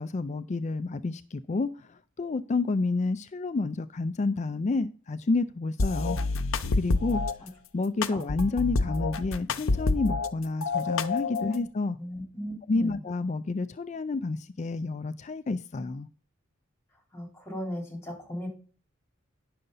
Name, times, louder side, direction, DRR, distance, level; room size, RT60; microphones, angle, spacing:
voice 1, 0.0-6.2 6.8-7.2 7.7-12.0 12.7-16.1, left 3 dB, 35° left, 13 dB, 0.4 m, -29 dB
sound 1, 5.8-7.3 8.0-10.3 10.6-11.6, left 3 dB, 90° left, 0.7 m, -28 dB
voice 2, 12.0-13.0 17.1-18.5, equal, 15° left, 0 dB, 3.7 m, -37 dB
10.0 x 6.6 x 4.0 m, 0.39 s
head